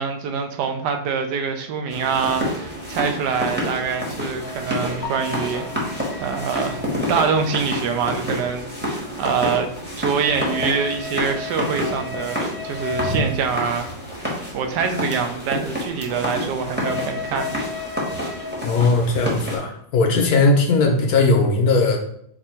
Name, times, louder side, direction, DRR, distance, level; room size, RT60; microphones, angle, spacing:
voice 1, 0.0-5.9 6.2-6.8 7.1-9.7 10.0-13.9 14.5-17.5, right 6 dB, 70° right, 5 dB, 1.0 m, -25 dB
sound 1, 1.9-19.6, left 1 dB, 10° right, 0.7 m, -28 dB
sound 2, 5.0-6.1, left 4 dB, 45° left, 0.5 m, -36 dB
voice 2, 18.6-22.0, left 3 dB, 65° left, 3 dB, 0.9 m, -18 dB
4.2 x 2.6 x 4.3 m, 0.69 s
omnidirectional pair, 2.2 m